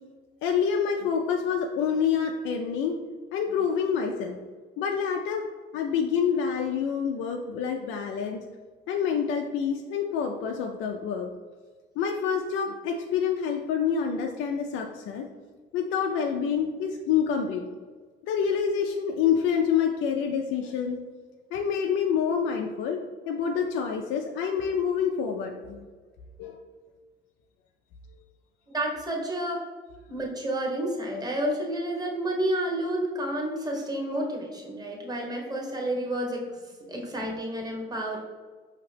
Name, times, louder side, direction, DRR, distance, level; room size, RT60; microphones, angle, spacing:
voice 1, 0.4-3.0 3.3-4.4 4.8-5.5 5.7-8.4 8.9-11.3 12.0-15.3 15.7-17.7 18.2-21.0 21.5-23.0 23.3-25.9 26.4-26.6, left 7 dB, 70° left, 2 dB, 0.4 m, -27 dB
voice 2, 28.7-29.6 30.1-36.5 36.9-38.2, right 1 dB, 20° right, -1 dB, 1.2 m, -30 dB
4.9 x 2.8 x 3.3 m, 1.4 s
supercardioid pair, 70°, 21 cm